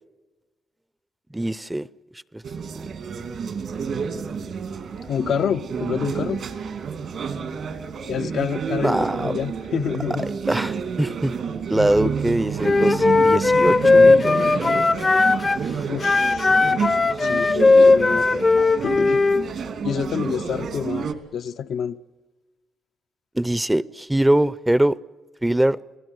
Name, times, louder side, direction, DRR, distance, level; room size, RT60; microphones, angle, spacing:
voice 1, 1.3-1.9 2.3-2.4 2.8-2.9 8.8-9.3 10.2-11.3 11.7-14.9 17.2-17.9 23.3-25.0 25.4-25.8, right 1 dB, 10° right, 0.7 m, -23 dB
sound 1, 2.4-21.1, right 6 dB, 70° right, 2.6 m, -29 dB
voice 2, 5.1-6.4 8.1-10.3 11.8-12.0 15.9-16.4 17.2-18.4 18.8-19.2 19.8-22.0, left 8 dB, 75° left, 0.8 m, -28 dB
Wind instrument woodwind instrument, 12.6-15.6 16.0-19.4, left 3 dB, 30° left, 0.7 m, -17 dB
29.5 x 18.0 x 8.1 m
cardioid pair, 70°, 0 cm